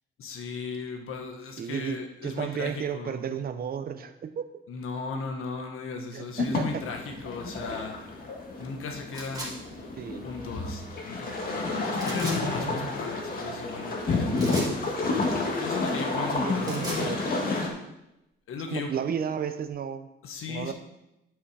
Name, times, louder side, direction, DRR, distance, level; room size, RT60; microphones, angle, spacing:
voice 1, 0.2-3.2 4.7-7.9 8.6-9.6 10.2-16.9 18.5-19.0 20.2-20.7, left 4 dB, 80° left, 4 dB, 1.3 m, -37 dB
voice 2, 1.6-4.4 6.1-6.8 10.0-10.2 16.3-17.5 18.7-20.1 20.5-20.7, right 8 dB, 45° right, 9 dB, 0.7 m, -33 dB
sound 1, 6.4-17.7, left 3 dB, 45° left, 1.6 m, -30 dB
sound 2, 9.1-9.5 11.9-12.4 14.4-14.7 16.4-17.0, right 1 dB, 15° right, 2.2 m, -37 dB
10.5 x 5.7 x 4.8 m, 0.89 s
wide cardioid pair, 175°, 21 cm